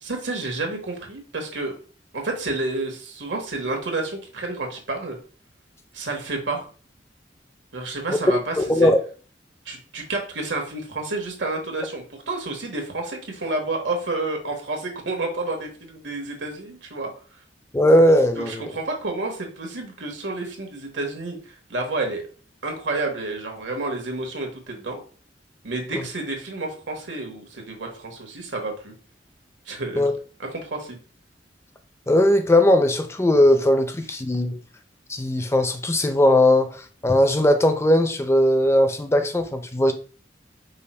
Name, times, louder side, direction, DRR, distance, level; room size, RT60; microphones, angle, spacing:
voice 1, 0.0-1.7 2.1-5.2 5.9-6.7 7.7-8.9 9.6-17.1 18.4-22.2 22.6-25.0 25.6-28.9 29.7-30.1 30.4-31.0, right 2 dB, 80° right, 1.3 m, -30 dB
voice 2, 8.6-9.0 17.7-18.7 30.0-30.1 32.1-34.6 35.1-36.7 37.0-39.9, left 1 dB, 15° left, 0.5 m, -18 dB
5.5 x 2.2 x 4.2 m
head